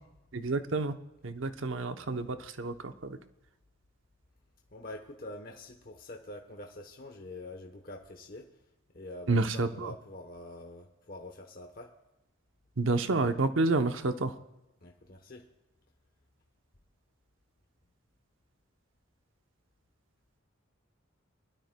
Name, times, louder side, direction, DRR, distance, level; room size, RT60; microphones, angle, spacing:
voice 1, 0.3-0.9 1.2-3.2 9.3-9.9 12.8-14.3, right 3 dB, 70° right, 9 dB, 0.8 m, -29 dB
voice 2, 4.7-8.5 8.9-11.9 14.8-15.4, left 2 dB, 45° left, 3 dB, 1.0 m, -45 dB
22.5 x 12.5 x 2.2 m, 0.95 s
head